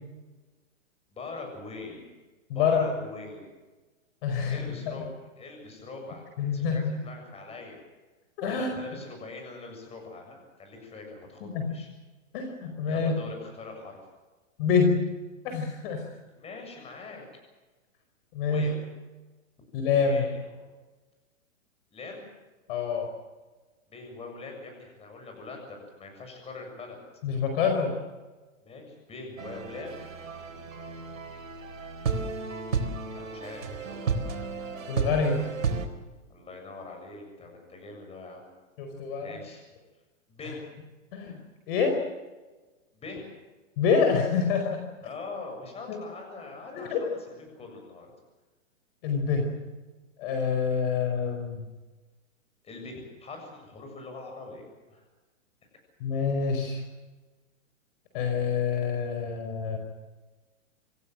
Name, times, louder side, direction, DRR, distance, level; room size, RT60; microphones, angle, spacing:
voice 1, 1.1-2.1 2.5-3.4 4.5-5.0 5.4-7.8 8.5-11.9 12.8-14.0 16.3-17.2 18.4-18.8 20.0-20.6 21.9-22.3 23.9-27.0 28.6-30.0 33.1-34.0 36.3-38.5 39.2-39.6 40.3-40.6 42.9-43.3 45.0-48.1 52.6-55.0, left 3 dB, 15° left, 3 dB, 7.2 m, -42 dB
voice 2, 2.5-2.9 4.2-4.7 6.4-7.0 8.4-8.7 11.4-11.7 12.3-13.2 14.6-15.0 15.4-16.0 18.3-18.7 19.7-20.2 22.7-23.1 27.2-28.0 34.9-35.4 38.8-39.4 41.1-41.3 41.7-42.0 43.8-44.8 45.9-46.0 46.7-47.0 49.0-49.5 50.2-51.7 56.0-56.8 58.1-59.8, left 5 dB, 45° left, 4 dB, 5.0 m, -26 dB
sound 1, 29.4-35.9, right 5 dB, 80° right, 4.2 m, -33 dB
26.5 x 17.0 x 7.7 m, 1.2 s
hypercardioid pair, 140°, 39 cm